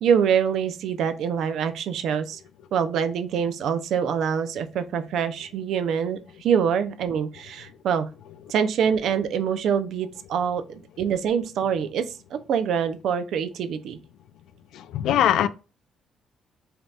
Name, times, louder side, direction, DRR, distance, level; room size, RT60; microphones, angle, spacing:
voice 1, 0.0-2.4 2.7-8.1 8.5-14.0, right 7 dB, 70° right, 0.4 m, -25 dB
voice 2, 14.7-15.5, left 11 dB, 85° left, 0.3 m, -21 dB
5.1 x 2.8 x 2.3 m
cardioid pair, 150°, 0 cm